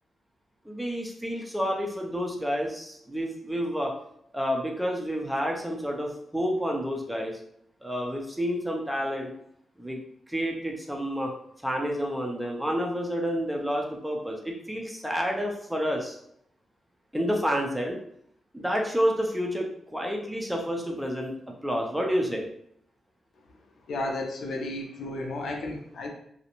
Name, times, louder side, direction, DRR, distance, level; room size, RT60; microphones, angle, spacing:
voice 1, 0.7-3.9 4.3-7.4 7.8-9.3 9.8-10.0 10.3-11.3 11.6-16.2 17.1-18.0 18.5-21.3 21.6-22.5, equal, 5° right, 0 dB, 0.4 m, -29 dB
voice 2, 23.9-26.1, left 2 dB, 70° left, 2 dB, 0.5 m, -33 dB
2.5 x 2.0 x 2.8 m, 0.71 s
cardioid pair, 115°, 0 cm